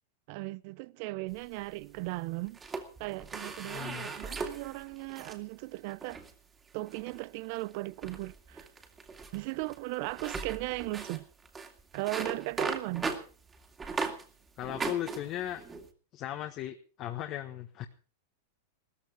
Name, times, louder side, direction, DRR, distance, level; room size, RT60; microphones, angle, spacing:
voice 1, 0.3-2.6 3.0-6.2 6.7-8.7 9.3-11.3 11.9-13.1, right 22 dB, 55° right, 0.7 m, -37 dB
sound 1, 1.3-2.1 2.5-5.4 5.9-6.3 6.9-7.2 7.5-7.7 8.0-14.3 14.6-15.9, right 4 dB, 15° right, 2.5 m, -38 dB
voice 2, 3.6-4.1 14.6-15.6 16.1-17.9, left 12 dB, 40° left, 1.6 m, -37 dB
17.0 x 14.5 x 5.0 m
supercardioid pair, 135°, 0 cm